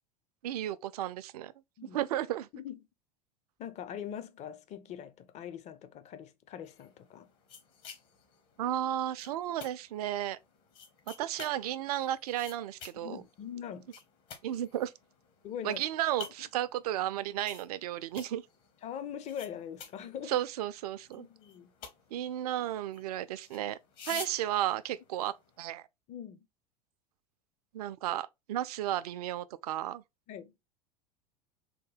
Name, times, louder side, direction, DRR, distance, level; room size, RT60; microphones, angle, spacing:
voice 1, 0.4-1.5 1.9-2.5 8.6-10.4 11.2-13.2 14.4-14.9 15.6-18.4 20.3-21.3 22.1-23.8 24.1-25.8 27.7-30.0, right 12 dB, 65° right, 0.4 m, -33 dB
voice 2, 3.6-7.3 13.0-13.9 15.4-15.8 18.8-20.4 21.2-21.7 24.1-24.2 26.1-26.5 30.3-30.5, left 9 dB, 35° left, 0.5 m, -42 dB
sound 1, 6.7-25.6, left 7 dB, 50° left, 1.1 m, -52 dB
3.6 x 2.2 x 3.2 m
figure-of-eight pair, 80°, 21 cm